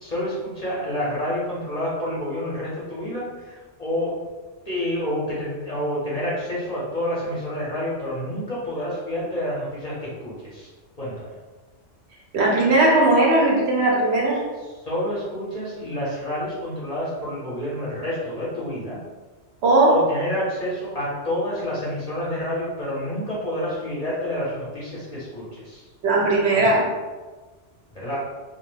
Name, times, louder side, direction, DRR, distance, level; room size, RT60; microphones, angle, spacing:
voice 1, 0.0-4.3 4.7-10.7 11.0-11.3 14.8-19.0 19.9-25.8 26.5-26.7 27.9-28.2, equal, 40° left, -8 dB, 0.6 m, -28 dB
voice 2, 12.3-14.4 19.6-20.0 26.0-26.9, right 2 dB, 70° right, -3 dB, 0.8 m, -18 dB
2.3 x 2.1 x 3.1 m, 1.3 s
omnidirectional pair, 1.2 m